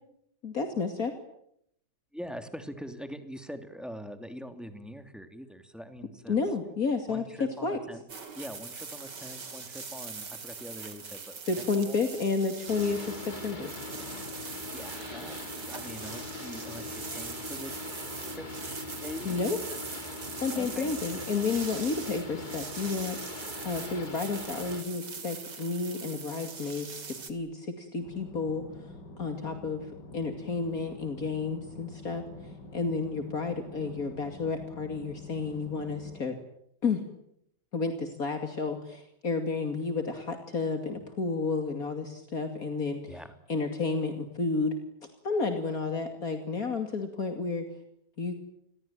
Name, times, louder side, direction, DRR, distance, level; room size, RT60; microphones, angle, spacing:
voice 1, 0.4-1.1 6.3-7.3 7.6-7.8 11.5-13.7 19.2-19.6 20.4-23.2 23.6-28.6 29.2-29.9 30.1-36.4 36.8-37.0 37.7-43.2 43.5-44.7 45.2-47.7 48.2-48.3, left 4 dB, 55° left, 6 dB, 2.9 m, -31 dB
voice 2, 2.1-6.4 7.1-8.0 8.3-11.4 11.8-12.3 14.6-17.7 18.3-18.4 19.0-19.4 20.5-20.9 43.1-43.3, equal, ahead, 8 dB, 2.8 m, -43 dB
sound 1, 8.1-27.3, right 5 dB, 80° right, 3.4 m, -42 dB
Boat Water vehicle, 12.7-24.8, left 2 dB, 25° left, 2.6 m, -41 dB
sound 2, 28.0-36.2, left 2 dB, 90° left, 4.5 m, -47 dB
30.0 x 21.5 x 9.1 m, 0.74 s
omnidirectional pair, 1.8 m